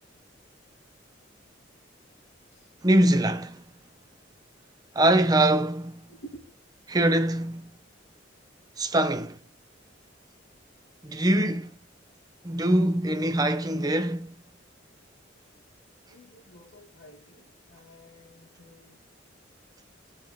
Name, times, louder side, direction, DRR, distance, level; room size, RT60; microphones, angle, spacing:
voice 1, 2.8-3.6 4.9-6.0 6.9-7.7 8.8-9.4 11.0-11.7 12.4-14.3, right 1 dB, 20° right, 0.8 m, -23 dB
voice 2, 6.1-6.5 16.0-19.0, right 1 dB, 75° left, 2.5 m, -50 dB
19.0 x 6.8 x 3.6 m
head